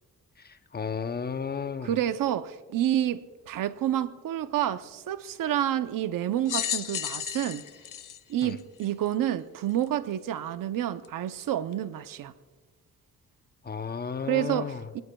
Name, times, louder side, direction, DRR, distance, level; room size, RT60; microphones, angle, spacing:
voice 1, 0.4-1.9 8.4-8.5 13.6-14.8, left 6 dB, 30° left, 0.7 m, -33 dB
voice 2, 1.8-7.6 8.3-12.3 14.2-15.0, right 11 dB, 85° right, 0.7 m, -29 dB
sound 1, 6.4-9.1 9.8-9.9 11.0-11.1, left 10 dB, 70° left, 0.8 m, -33 dB
23.5 x 19.0 x 2.3 m
cardioid pair, 110°, 32 cm